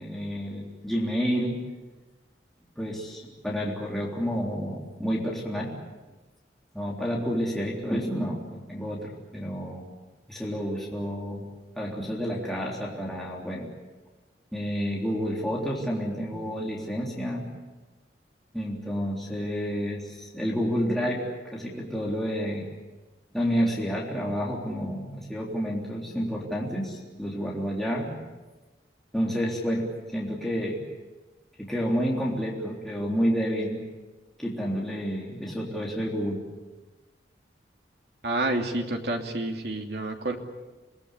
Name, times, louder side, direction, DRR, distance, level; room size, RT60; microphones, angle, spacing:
voice 1, 0.0-1.6 2.8-5.7 6.7-9.8 10.3-11.4 11.8-13.7 14.5-17.5 18.5-22.7 23.3-28.2 29.1-30.8 31.6-33.8 34.4-36.4, equal, ahead, -4 dB, 3.6 m, -29 dB
voice 2, 38.2-40.4, right 2 dB, 60° right, 3 dB, 2.9 m, -29 dB
27.5 x 19.5 x 8.4 m, 1.2 s
head